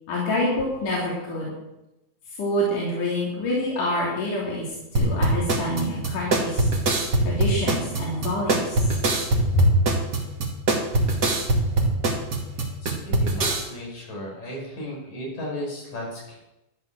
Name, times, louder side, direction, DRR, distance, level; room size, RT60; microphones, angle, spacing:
voice 1, 0.1-1.5 2.4-4.7 4.9-8.8 9.5-9.9, left 1 dB, 90° left, -5 dB, 4.7 m, -26 dB
sound 1, 5.0-13.6, right 2 dB, 35° right, 2.5 m, -23 dB
voice 2, 12.6-16.4, left 1 dB, 65° left, -2 dB, 6.9 m, -35 dB
13.5 x 11.5 x 6.3 m, 0.94 s
omnidirectional pair, 3.5 m